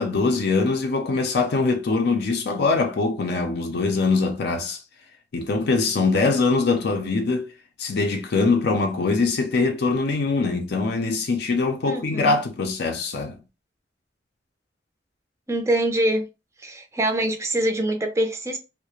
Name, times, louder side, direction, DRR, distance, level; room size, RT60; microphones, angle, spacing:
voice 1, 0.0-4.8 5.3-7.5 7.8-13.4, left 3 dB, 65° left, 0.4 m, -23 dB
voice 2, 11.9-12.4 15.5-16.2 16.6-18.6, right 1 dB, 15° right, 0.4 m, -24 dB
2.3 x 2.0 x 2.9 m
head